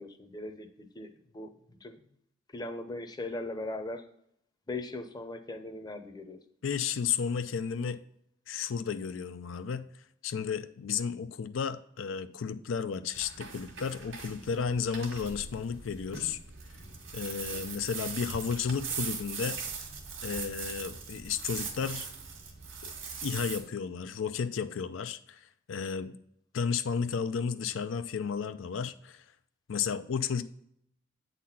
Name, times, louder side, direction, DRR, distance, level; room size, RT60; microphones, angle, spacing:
voice 1, 0.0-1.5 1.8-2.0 2.5-4.0 4.7-6.4 17.5-17.6, left 2 dB, 20° left, 7 dB, 0.7 m, -39 dB
voice 2, 6.6-8.0 8.5-9.8 10.2-16.4 17.1-19.6 20.2-22.1 22.8-22.9 23.2-26.2 26.5-29.2 29.7-30.4, left 6 dB, 85° left, 11 dB, 0.4 m, -33 dB
sound 1, 13.1-23.6, right 5 dB, 85° right, 1.9 m, -40 dB
8.3 x 4.1 x 5.7 m, 0.71 s
head